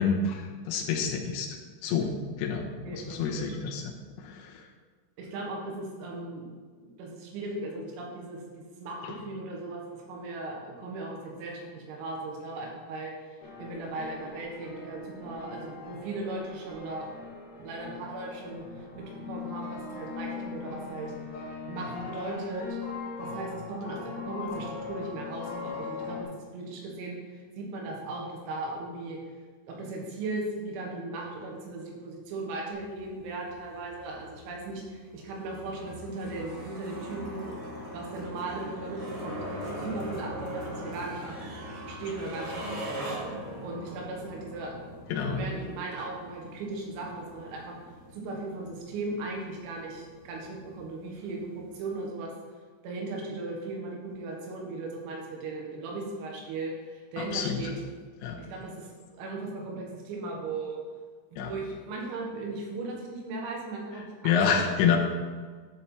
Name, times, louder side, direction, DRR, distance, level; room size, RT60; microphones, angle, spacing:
voice 1, 0.0-1.5 1.8-2.1 2.4-3.9 4.2-4.7 9.0-9.2 45.1-45.5 57.2-57.6 58.2-58.4 61.4-61.5 64.2-65.0, left 6 dB, 80° left, 1 dB, 2.7 m, -28 dB
voice 2, 2.8-3.5 5.2-6.5 6.8-9.8 10.1-13.1 13.6-17.1 17.5-18.6 19.0-21.1 21.7-22.8 23.2-29.2 29.7-37.7 37.9-41.3 41.9-43.1 43.6-44.7 45.3-47.8 48.1-52.3 52.8-57.7 58.4-58.9 59.1-60.8 61.3-64.6, right 2 dB, 85° right, -1 dB, 4.0 m, -37 dB
sound 1, 13.4-26.2, left 4 dB, 60° left, 2.6 m, -40 dB
sound 2, 32.7-52.0, equal, 65° right, 2.8 m, -42 dB
11.5 x 4.3 x 4.3 m, 1.5 s
omnidirectional pair, 6.0 m